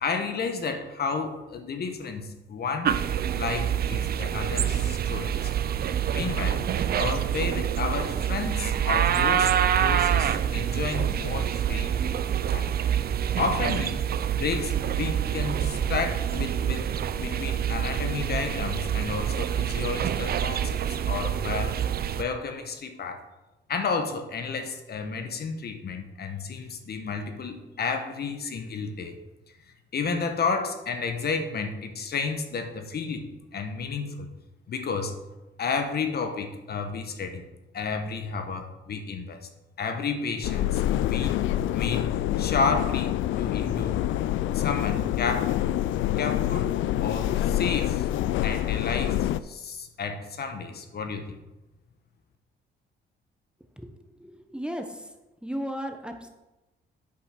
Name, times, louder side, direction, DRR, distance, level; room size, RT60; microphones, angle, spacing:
voice 1, 0.0-3.0 3.4-5.5 6.1-6.6 7.0-12.0 12.5-12.7 13.4-14.0 14.4-20.8 21.1-21.8 22.2-23.2 23.7-29.2 29.9-33.2 33.5-34.3 34.7-35.1 35.6-37.4 37.7-39.4 39.8-41.4 41.7-44.0 44.5-45.5 46.2-48.1 48.4-51.3, left 5 dB, 55° left, 7 dB, 1.2 m, -31 dB
sound 1, 2.8-22.2, right 9 dB, 50° right, 0.5 m, -26 dB
sound 2, 40.4-49.4, left 12 dB, 75° left, 0.4 m, -26 dB
voice 2, 54.2-55.1 55.4-56.3, equal, 5° right, 5 dB, 0.9 m, -35 dB
8.6 x 5.5 x 5.9 m, 1.0 s
cardioid pair, 90°, 20 cm